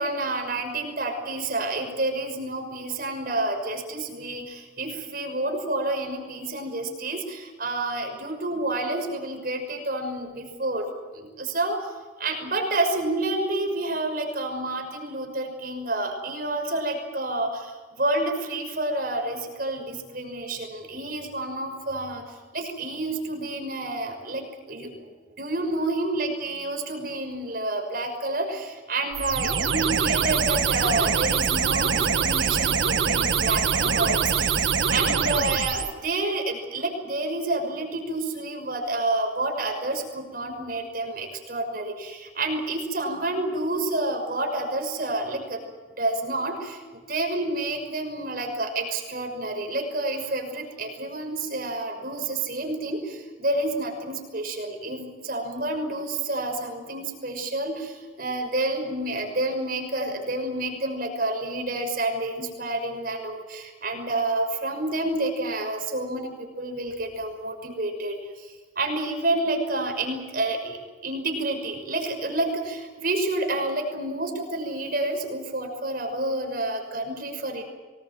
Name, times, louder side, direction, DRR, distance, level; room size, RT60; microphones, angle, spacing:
voice 1, 0.0-10.9 11.1-11.8 12.2-17.6 18.0-22.2 22.5-25.1 25.4-45.6 46.0-46.8 47.1-57.9 58.2-68.2 68.8-70.8 71.0-77.6, right 2 dB, 50° right, 3 dB, 6.0 m, -29 dB
sound 1, 29.1-35.9, right 6 dB, 80° right, 1.6 m, -24 dB
24.5 x 21.0 x 7.8 m, 1.3 s
head